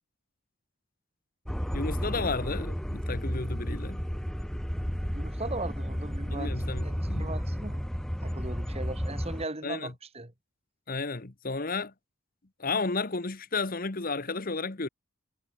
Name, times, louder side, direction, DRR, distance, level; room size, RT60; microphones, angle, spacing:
sound 1, 1.4-9.4, equal, 5° left, 0.6 m, -32 dB
voice 1, 1.7-4.0 6.3-7.3 9.6-9.9 10.9-11.9 12.6-14.9, left 3 dB, 45° left, 1.2 m, -32 dB
voice 2, 5.1-7.8 8.2-10.3, right 2 dB, 30° right, 2.3 m, -38 dB
head